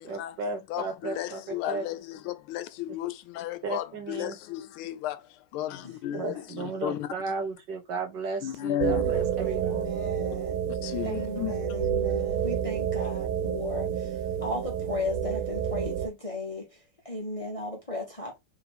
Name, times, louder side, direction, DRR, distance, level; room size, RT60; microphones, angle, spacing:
voice 1, 0.0-1.8 3.6-4.4 6.1-9.9, right 4 dB, 60° right, 1.6 m, -34 dB
voice 2, 0.7-2.2 2.5-3.1 3.4-5.1 5.5-5.7 6.0-6.3 6.8-7.0 8.4-9.0 10.9-11.5, left 12 dB, 85° left, 1.5 m, -33 dB
voice 3, 6.3-6.7 9.4-10.6 11.0-16.8 17.0-18.4, left 2 dB, 30° left, 0.7 m, -36 dB
sound 1, 8.8-16.1, right 9 dB, 90° right, 1.5 m, -29 dB
4.1 x 2.8 x 4.1 m
omnidirectional pair, 2.3 m